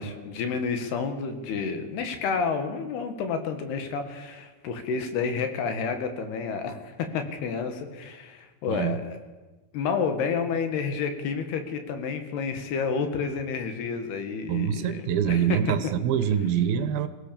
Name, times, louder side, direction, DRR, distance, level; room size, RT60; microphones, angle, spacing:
voice 1, 0.0-9.0 9.7-15.6, left 5 dB, 90° left, 7 dB, 3.8 m, -30 dB
voice 2, 14.5-17.1, right 9 dB, 75° right, 11 dB, 2.8 m, -25 dB
22.5 x 17.0 x 7.0 m, 1.2 s
omnidirectional pair, 4.5 m